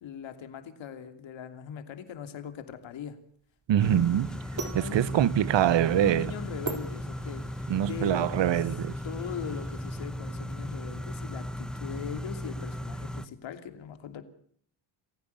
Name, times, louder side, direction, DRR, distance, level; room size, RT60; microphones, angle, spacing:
voice 1, 0.0-3.2 3.8-4.1 4.5-5.2 5.9-7.4 7.9-8.6 9.0-14.2, left 8 dB, 70° left, 3.0 m, -40 dB
sound 1, 2.5-7.7, right 5 dB, 40° right, 4.1 m, -41 dB
sound 2, 3.7-10.1, right 1 dB, 15° right, 6.0 m, -54 dB
voice 2, 3.7-4.3 4.7-6.3 7.7-8.9, right 11 dB, 65° right, 1.3 m, -24 dB
sound 3, 3.8-13.3, left 1 dB, ahead, 1.1 m, -37 dB
28.5 x 15.5 x 6.9 m
cardioid pair, 100°, 48 cm